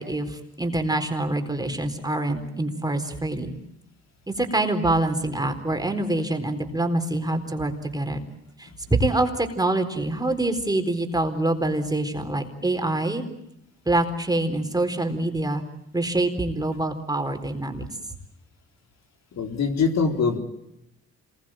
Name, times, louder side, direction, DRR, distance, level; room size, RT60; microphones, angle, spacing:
voice 1, 0.0-3.5 4.3-8.2 8.6-13.2 13.9-15.6 15.9-17.8, right 2 dB, 10° right, 5 dB, 4.1 m, -25 dB
voice 2, 19.3-20.4, left 5 dB, 60° left, 5 dB, 4.0 m, -23 dB
27.0 x 21.5 x 9.0 m, 0.85 s
cardioid pair, 90°, 30 cm